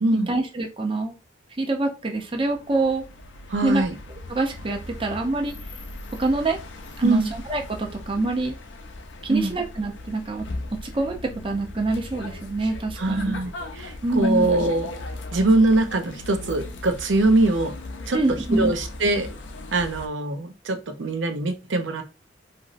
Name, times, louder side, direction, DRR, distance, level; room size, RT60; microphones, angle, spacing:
voice 1, 0.1-1.1 1.6-3.0 3.6-3.8 4.3-5.5 6.2-6.6 7.0-8.6 9.2-10.4 10.8-13.4 14.0-14.5 18.1-18.7, right 2 dB, 30° right, 2 dB, 0.6 m, -25 dB
sound 1, 2.1-20.1, left 2 dB, 80° left, 0.5 m, -38 dB
voice 2, 3.5-3.9 7.0-7.3 9.3-9.5 13.0-13.5 13.8-14.9 15.3-17.7 18.1-18.2 18.5-19.3 19.7-22.0, right 2 dB, 85° right, 7 dB, 0.6 m, -22 dB
3.0 x 2.6 x 2.5 m, 0.29 s
head